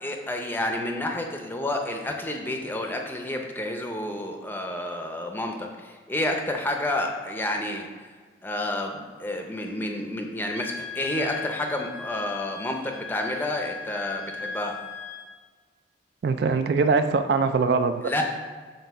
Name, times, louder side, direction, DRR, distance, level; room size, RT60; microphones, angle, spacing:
voice 1, 0.0-7.9 8.4-14.8 18.0-18.2, left 1 dB, 10° left, 2 dB, 0.5 m, -30 dB
Wind instrument woodwind instrument, 10.5-15.3, left 5 dB, 70° left, 0.6 m, -38 dB
voice 2, 16.2-18.1, right 4 dB, 60° right, 9 dB, 0.3 m, -22 dB
7.7 x 2.6 x 5.5 m, 1.5 s
head